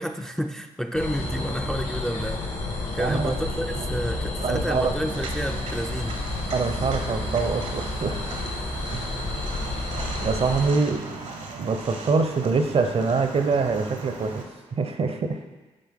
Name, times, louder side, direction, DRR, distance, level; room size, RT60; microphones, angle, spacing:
voice 1, 0.0-2.4 2.9-6.2, equal, 5° left, 5 dB, 0.4 m, -30 dB
sound 1, 0.9-10.7, left 2 dB, 70° left, 1.8 m, -30 dB
voice 2, 3.0-3.3 4.4-4.9 6.5-8.2 8.9-9.1 10.2-11.0 11.6-14.4 14.7-15.4, right 4 dB, 50° right, 7 dB, 0.7 m, -24 dB
Walk footsteps, 5.1-14.4, right 3 dB, 70° right, 1.0 m, -38 dB
9.2 x 3.5 x 3.6 m, 1.2 s
supercardioid pair, 50°, 13 cm